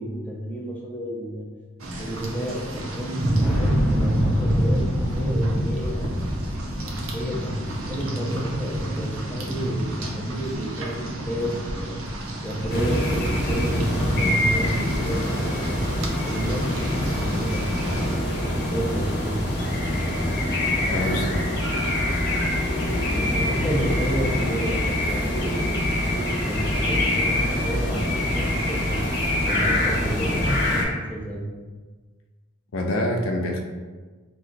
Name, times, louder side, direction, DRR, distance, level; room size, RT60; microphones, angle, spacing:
voice 1, 0.0-1.5 2.0-4.8 5.1-6.1 6.7-12.0 12.4-15.8 16.2-19.4 23.1-29.0 29.4-30.8 31.1-31.4, right 1 dB, 5° left, -4 dB, 0.5 m, -31 dB
Rain, 1.8-18.1, right 1 dB, 80° right, 0.5 m, -28 dB
Boom, 3.4-8.1 8.4-8.5 9.6-9.7, equal, 15° right, 0.8 m, -30 dB
sound 1, 12.7-30.8, left 1 dB, 50° left, 0.9 m, -25 dB
voice 2, 20.9-21.5 32.7-33.6, left 1 dB, 70° left, 2 dB, 0.4 m, -26 dB
2.8 x 2.2 x 3.8 m, 1.4 s
head